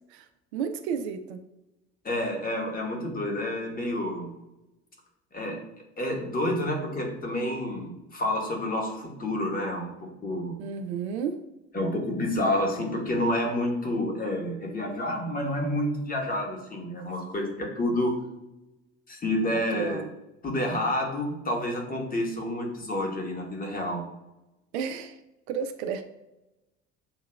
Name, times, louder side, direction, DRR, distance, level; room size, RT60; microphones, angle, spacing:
voice 1, 0.1-1.4 10.6-11.4 19.7-20.1 24.7-25.2 25.5-26.0, right 7 dB, 65° right, 7 dB, 0.5 m, -32 dB
voice 2, 2.0-4.3 5.3-5.6 6.0-10.6 11.7-18.2 19.1-20.0 20.4-24.1, left 1 dB, 25° left, 0 dB, 1.2 m, -29 dB
7.4 x 2.8 x 2.3 m, 0.98 s
figure-of-eight pair, 60°, 35 cm